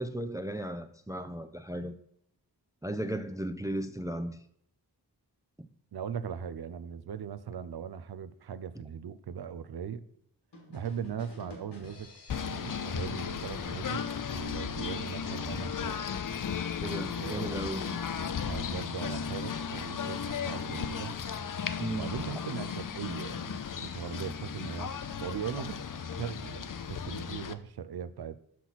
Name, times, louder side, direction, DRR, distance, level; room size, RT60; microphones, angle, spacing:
voice 1, 0.0-2.0 2.8-4.4 5.6-5.7 16.8-17.9 21.8-22.2, right 1 dB, 10° right, 0.4 m, -35 dB
voice 2, 5.9-10.0 10.7-12.1 12.4-14.0 14.3-16.0 17.2-18.0 18.4-21.2 21.9-24.9 25.2-25.8 26.1-28.4, right 8 dB, 65° right, 0.6 m, -39 dB
sound 1, 10.5-14.3, left 2 dB, 70° left, 1.6 m, -53 dB
Singing / Bird, 12.3-27.5, left 7 dB, 50° left, 0.5 m, -35 dB
6.0 x 5.8 x 4.1 m
cardioid pair, 40°, 42 cm